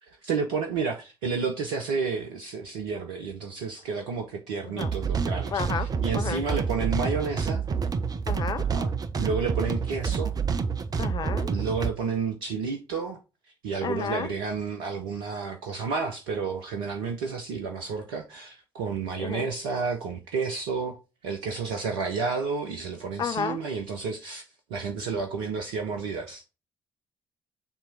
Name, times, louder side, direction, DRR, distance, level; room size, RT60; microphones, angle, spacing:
voice 1, 0.0-7.6 8.6-8.9 9.2-10.3 11.5-13.2 13.6-21.0 21.2-26.4, right 5 dB, 70° right, 0.7 m, -31 dB
sound 1, 4.8-11.9, right 5 dB, 35° right, 0.7 m, -28 dB
voice 2, 5.5-5.9 6.1-6.6 8.3-8.7 11.0-11.5 13.8-14.3 19.2-19.5 23.2-23.6, left 6 dB, 40° left, 0.7 m, -31 dB
7.0 x 2.9 x 5.2 m
figure-of-eight pair, 45°, 11 cm